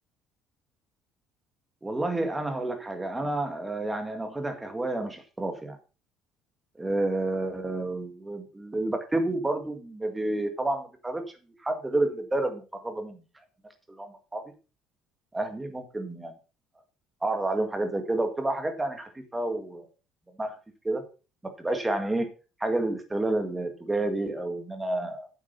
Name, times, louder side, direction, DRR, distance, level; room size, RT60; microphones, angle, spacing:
voice 1, 1.8-5.8 6.8-11.2 11.6-13.2 13.9-14.4 15.3-16.3 17.2-19.9 20.4-20.5 20.8-21.0 21.4-22.3 22.6-25.3, right 2 dB, 10° right, 6 dB, 1.9 m, -30 dB
9.0 x 7.4 x 5.4 m, 0.33 s
cardioid pair, 150°, 0 cm